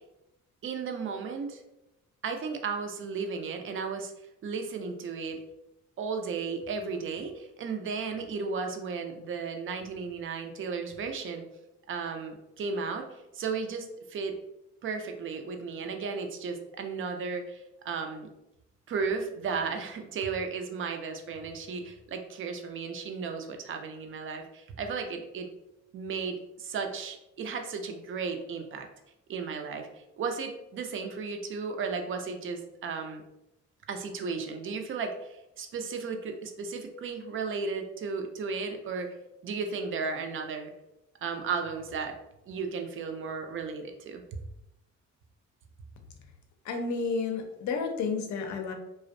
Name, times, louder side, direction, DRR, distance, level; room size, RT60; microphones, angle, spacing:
voice 1, 0.6-1.6 2.2-4.1 4.4-5.4 6.0-11.4 11.9-13.1 13.3-14.4 14.8-18.3 18.9-25.5 25.9-28.9 29.3-29.9 30.2-33.2 33.9-39.1 39.4-40.7 41.2-42.2 42.5-44.2, right 5 dB, 45° right, 5 dB, 0.4 m, -34 dB
voice 2, 46.6-48.7, left 4 dB, 70° left, 5 dB, 0.5 m, -31 dB
2.4 x 2.1 x 2.5 m, 0.89 s
cardioid pair, 90°, 30 cm